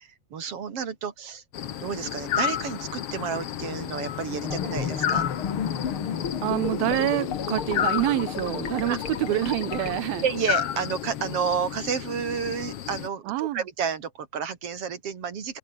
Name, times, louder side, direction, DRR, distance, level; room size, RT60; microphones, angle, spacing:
voice 1, 0.0-1.4 1.8-5.3 8.9-9.0 10.2-15.6, right 7 dB, 40° right, 2.9 m, -30 dB
sound 1, 1.5-13.1, left 10 dB, 65° left, 1.4 m, -32 dB
sound 2, 4.4-10.0, left 7 dB, 40° left, 2.1 m, -32 dB
voice 2, 6.4-10.2 13.3-13.6, right 15 dB, 75° right, 2.5 m, -26 dB
omnidirectional pair, 4.7 m